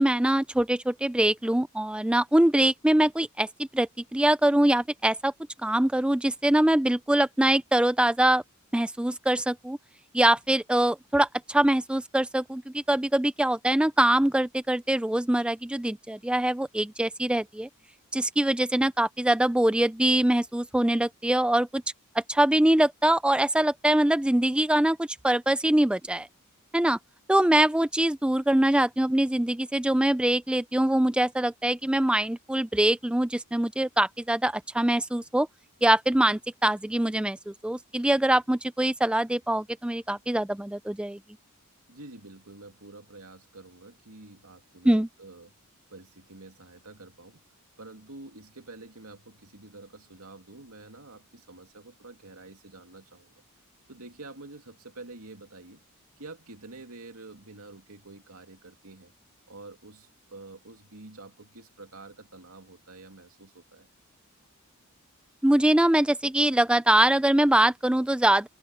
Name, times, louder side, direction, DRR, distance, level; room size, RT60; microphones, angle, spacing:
voice 1, 0.0-5.3 5.6-8.4 8.7-9.8 10.1-17.7 18.1-21.8 22.2-26.3 26.7-27.0 27.3-35.5 35.8-41.2 44.8-45.1 65.4-68.5, right 1 dB, 5° right, 0.3 m, -23 dB
voice 2, 41.9-45.5 45.9-47.4 47.8-53.3 53.9-55.8 56.2-59.1 59.5-63.9, right 2 dB, 75° right, 2.7 m, -47 dB
open air
head